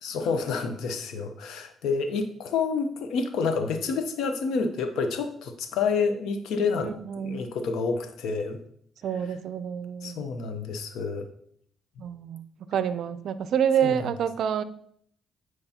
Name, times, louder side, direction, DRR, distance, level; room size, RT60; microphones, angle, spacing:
voice 1, 0.0-6.9 7.2-8.6 10.0-11.3 13.8-14.1, left 5 dB, 85° left, 7 dB, 0.8 m, -28 dB
voice 2, 6.8-7.4 9.0-10.3 12.0-14.6, right 8 dB, 70° right, 14 dB, 0.4 m, -28 dB
9.0 x 4.6 x 2.9 m, 0.67 s
cardioid pair, 90°, 0 cm